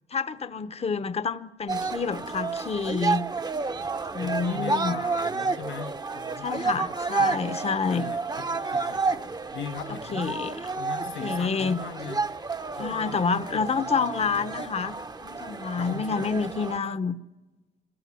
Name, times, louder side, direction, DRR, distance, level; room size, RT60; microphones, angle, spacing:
voice 1, 0.1-3.2 4.1-4.9 6.4-8.1 10.1-10.6 11.2-11.8 12.8-17.1, left 5 dB, 30° left, 0.9 m, -28 dB
sound 1, 1.7-16.8, right 4 dB, 20° right, 0.8 m, -31 dB
voice 2, 4.2-6.8 7.2-10.4 10.8-12.2 12.8-14.6 15.8-16.3 16.8-17.0, left 9 dB, 75° left, 1.0 m, -41 dB
25.5 x 14.5 x 9.6 m
cardioid pair, 90°, 20 cm